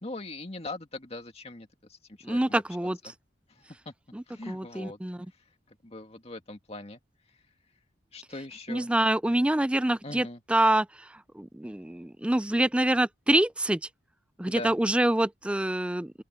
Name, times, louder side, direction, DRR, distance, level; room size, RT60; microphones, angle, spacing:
voice 1, 0.0-2.6 3.0-3.1 3.5-3.9 4.3-5.0 5.7-7.0 8.1-8.9 10.0-10.4 14.5-14.7, left 2 dB, 35° left, 2.1 m, -41 dB
voice 2, 2.2-3.0 4.1-5.3 8.7-10.9 11.4-13.8 14.4-16.2, right 1 dB, 5° right, 0.3 m, -26 dB
open air
head